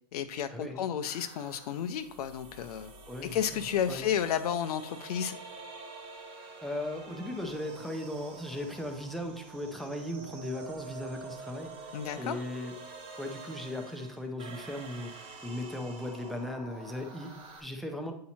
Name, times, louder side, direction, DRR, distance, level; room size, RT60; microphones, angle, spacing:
voice 1, 0.1-2.9 3.3-5.4 11.9-12.3, left 9 dB, 70° left, 9 dB, 0.5 m, -32 dB
sound 1, 1.1-17.6, right 4 dB, 25° right, 1.0 m, -47 dB
voice 2, 3.1-4.0 6.6-18.1, left 1 dB, ahead, 4 dB, 0.5 m, -38 dB
8.4 x 2.8 x 4.2 m, 0.70 s
hypercardioid pair, 140°, 20 cm